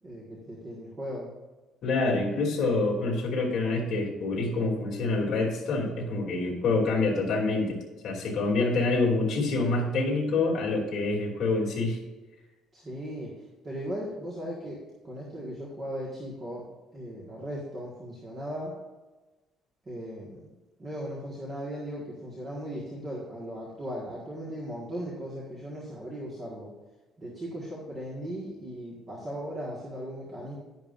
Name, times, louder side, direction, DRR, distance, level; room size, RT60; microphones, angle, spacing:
voice 1, 0.0-1.3 12.7-13.3 13.6-18.7 19.8-20.5 20.8-26.7 27.2-30.6, equal, 20° right, -4 dB, 1.6 m, -37 dB
voice 2, 1.8-12.0, left 3 dB, 45° left, -4 dB, 2.8 m, -26 dB
10.5 x 10.5 x 2.6 m, 1.2 s
cardioid pair, 180°, 0 cm